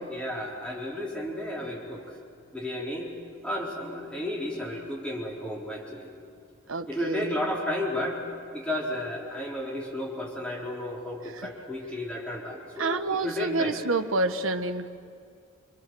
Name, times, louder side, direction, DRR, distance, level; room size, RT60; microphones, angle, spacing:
voice 1, 0.1-2.2 2.5-3.1 3.4-6.1 6.9-8.2 8.5-13.8, left 1 dB, 5° left, -3 dB, 4.2 m, -33 dB
voice 2, 6.7-7.4 11.3-11.5 12.8-14.9, right 2 dB, 80° right, 8 dB, 1.3 m, -28 dB
26.5 x 24.5 x 7.9 m, 2.3 s
head